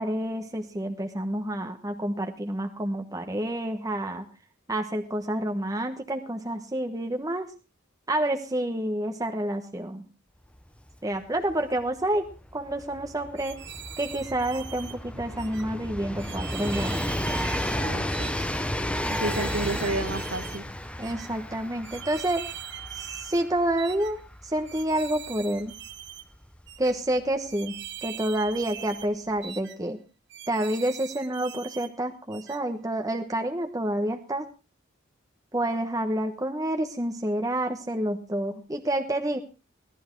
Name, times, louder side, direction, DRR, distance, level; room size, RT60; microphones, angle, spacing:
voice 1, 0.0-4.2 4.7-7.5 8.1-10.0 11.0-13.6 14.0-17.0 21.0-22.4 22.9-25.8 26.8-27.7 28.0-30.0 30.5-34.4 35.5-39.4, right 1 dB, 15° right, 4 dB, 1.1 m, -29 dB
Train, 10.6-10.7 10.9-27.5 28.5-28.6, left 1 dB, 5° left, 0.8 m, -33 dB
sound 1, 13.4-15.0 15.4-15.6 16.2-17.8 18.1-18.5 19.0-20.6 21.0-21.3 21.8-23.4 23.8-24.1 24.7-26.3 26.7-26.9 27.5-29.1 29.4-29.8 30.3-31.9 32.3-32.6, right 11 dB, 60° right, 1.1 m, -41 dB
voice 2, 17.8-18.3 19.2-20.7, right 2 dB, 80° right, 10 dB, 1.6 m, -31 dB
18.0 x 12.0 x 4.5 m, 0.32 s
head